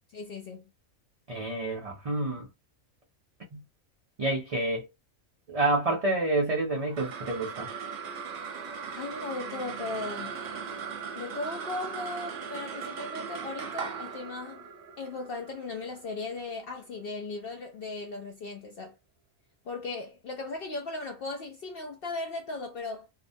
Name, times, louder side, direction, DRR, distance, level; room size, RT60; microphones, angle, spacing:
voice 1, 0.1-0.6 9.0-10.3 11.1-14.7 15.0-18.9 19.6-23.1, left 3 dB, 65° left, 0.6 m, -37 dB
voice 2, 1.3-2.5 3.5-3.6 4.2-4.9 5.5-7.7, right 2 dB, 50° right, 0.4 m, -28 dB
sound 1, 6.7-17.3, right 6 dB, 85° right, 1.0 m, -39 dB
2.8 x 2.1 x 2.5 m
omnidirectional pair, 1.4 m